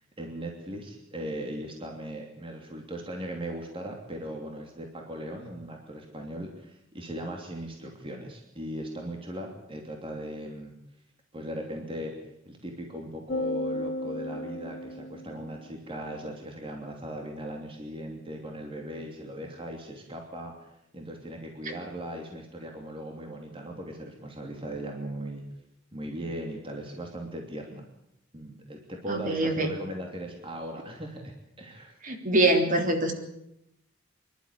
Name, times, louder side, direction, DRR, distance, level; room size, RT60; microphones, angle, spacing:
voice 1, 0.2-10.7 11.3-12.2 12.4-20.7 20.9-25.4 25.9-27.8 28.3-32.0, right 1 dB, 30° right, 2 dB, 3.0 m, -38 dB
sound 1, 13.3-15.8, left 1 dB, 55° left, 1.1 m, -34 dB
voice 2, 29.1-29.7 32.0-33.1, right 2 dB, 45° right, 4 dB, 3.3 m, -24 dB
25.0 x 12.5 x 9.9 m, 0.81 s
head